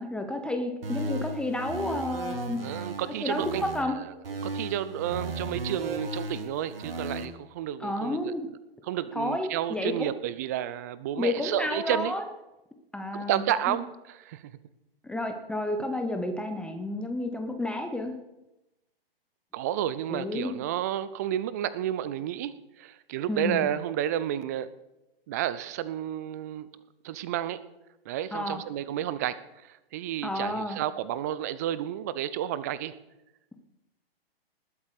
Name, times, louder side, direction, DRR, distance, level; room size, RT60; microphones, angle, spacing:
voice 1, 0.0-2.6 3.2-3.9 7.8-8.5 9.1-10.1 11.2-12.2 12.9-13.8 15.0-18.1 20.1-20.5 23.3-23.7 28.3-28.6 30.2-30.8, left 1 dB, 5° left, 5 dB, 0.7 m, -31 dB
sound 1, 0.8-3.8 4.2-7.3, right 2 dB, 65° right, 1.7 m, -35 dB
voice 2, 2.6-3.6 3.9-4.0 4.4-8.3 8.9-12.1 13.1-14.5 19.5-24.7 25.3-26.7 27.0-27.6 28.1-29.4 29.7-32.9, right 11 dB, 15° right, 16 dB, 0.4 m, -31 dB
19.5 x 8.2 x 4.9 m, 0.95 s
figure-of-eight pair, 120°, 30 cm